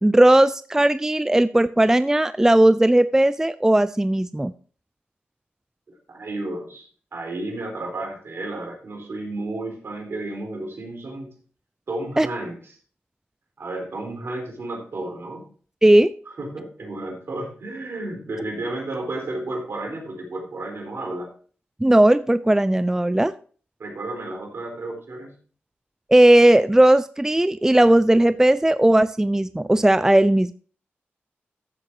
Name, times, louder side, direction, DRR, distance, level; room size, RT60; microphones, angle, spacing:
voice 1, 0.0-4.5 12.2-12.3 15.8-16.1 21.8-23.3 26.1-30.5, right 1 dB, 10° right, 15 dB, 0.4 m, -17 dB
voice 2, 5.9-11.3 11.9-12.6 13.6-15.4 16.4-21.3 23.8-25.3, right 2 dB, 65° right, 2 dB, 4.1 m, -32 dB
14.5 x 7.8 x 2.9 m, 0.42 s
cardioid pair, 50°, 4 cm